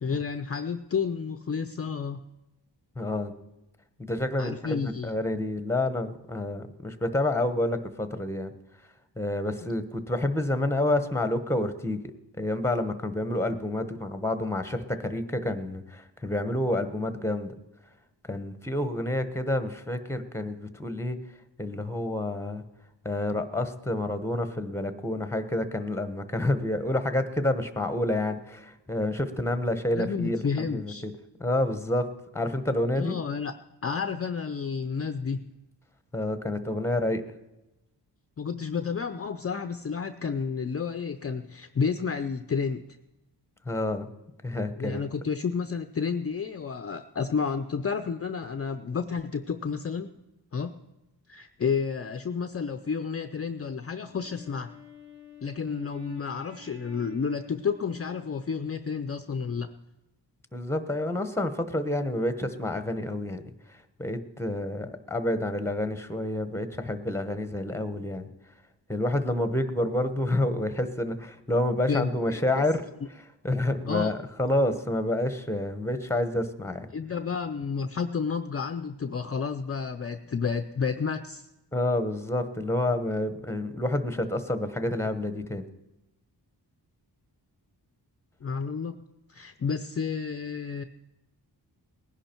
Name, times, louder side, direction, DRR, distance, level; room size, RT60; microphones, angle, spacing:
voice 1, 0.0-2.2 4.4-5.1 29.9-31.1 33.0-33.5 33.8-35.5 38.4-42.8 44.8-50.2 50.5-50.8 51.3-54.7 55.4-59.7 71.9-72.6 73.9-74.2 76.9-81.5 88.4-89.0 89.3-90.8, left 5 dB, 35° left, 9 dB, 0.5 m, -31 dB
voice 2, 3.0-3.3 4.0-8.5 9.2-12.0 12.4-17.5 18.3-21.2 21.6-22.6 23.0-31.1 31.4-32.1 32.3-33.2 36.1-37.2 43.6-44.1 44.4-45.0 60.5-63.4 64.0-68.3 68.9-72.8 73.4-76.9 81.7-85.6, left 1 dB, 5° left, 10 dB, 1.0 m, -28 dB
Wind instrument woodwind instrument, 54.1-58.8, left 4 dB, 75° right, 3.1 m, -50 dB
19.0 x 11.0 x 4.5 m, 0.97 s
wide cardioid pair, 110°, 41 cm